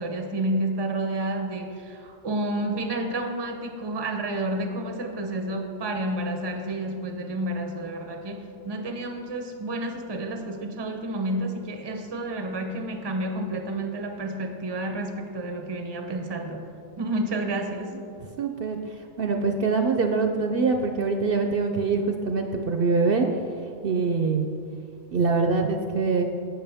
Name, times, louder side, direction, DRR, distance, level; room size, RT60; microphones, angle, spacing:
voice 1, 0.0-16.7 17.0-17.9, right 1 dB, 25° right, 5 dB, 0.7 m, -30 dB
voice 2, 18.4-18.8 19.2-23.3 23.8-24.5 25.1-26.2, right 4 dB, 60° right, 4 dB, 0.8 m, -24 dB
17.0 x 6.2 x 3.5 m, 2.4 s
omnidirectional pair, 1.2 m